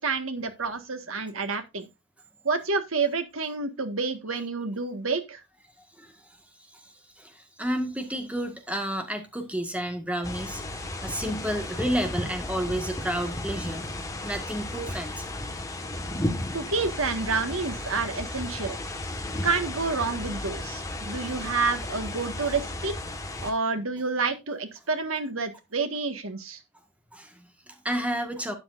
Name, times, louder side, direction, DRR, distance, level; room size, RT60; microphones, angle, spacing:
voice 1, 0.0-1.9 2.4-5.4 16.5-18.8 19.4-23.0 23.4-26.6, right 4 dB, 90° right, 1.7 m, -29 dB
voice 2, 7.2-14.0 14.2-15.3 27.1-28.5, equal, 5° right, 1.7 m, -31 dB
sound 1, 10.2-23.5, left 1 dB, 15° left, 1.5 m, -34 dB
12.0 x 8.9 x 2.6 m
head